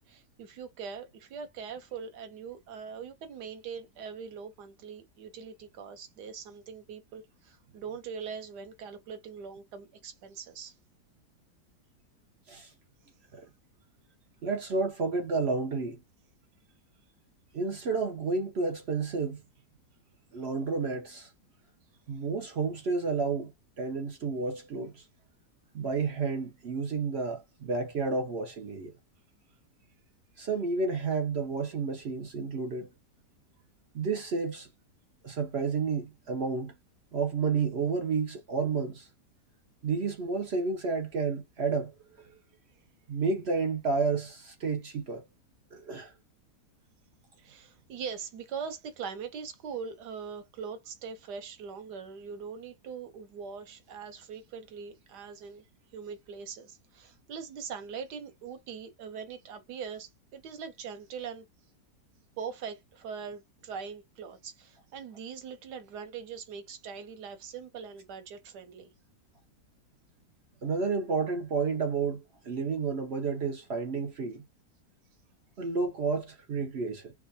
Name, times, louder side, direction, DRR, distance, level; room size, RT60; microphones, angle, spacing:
voice 1, 0.0-10.7 47.4-55.7 55.9-61.5 62.4-68.9, right 6 dB, 90° right, 1.5 m, -42 dB
voice 2, 14.4-16.0 17.5-19.4 20.3-21.3 22.1-23.5 23.8-25.0 25.7-28.9 30.4-32.9 33.9-34.7 35.2-36.7 37.1-39.1 39.8-41.9 43.1-45.2 45.7-46.1 70.6-74.4 75.6-77.1, right 4 dB, 55° right, 0.7 m, -31 dB
4.6 x 2.5 x 2.6 m
omnidirectional pair, 1.7 m